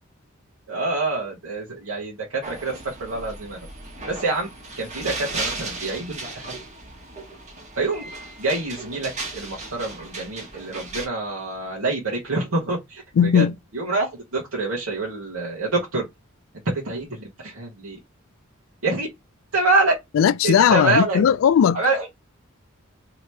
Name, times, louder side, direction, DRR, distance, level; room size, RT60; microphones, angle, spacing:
voice 1, 0.7-3.6 4.1-4.5 4.8-6.6 7.8-8.0 8.4-13.4 13.7-16.1 16.6-18.0 18.8-19.1 19.5-19.9 20.4-21.2 21.7-22.1, right 3 dB, 80° right, 1.0 m, -26 dB
sound 1, 2.4-11.1, right 3 dB, 35° right, 1.0 m, -36 dB
voice 2, 13.2-13.5 20.1-21.8, left 8 dB, 75° left, 0.3 m, -17 dB
2.9 x 2.8 x 3.2 m
head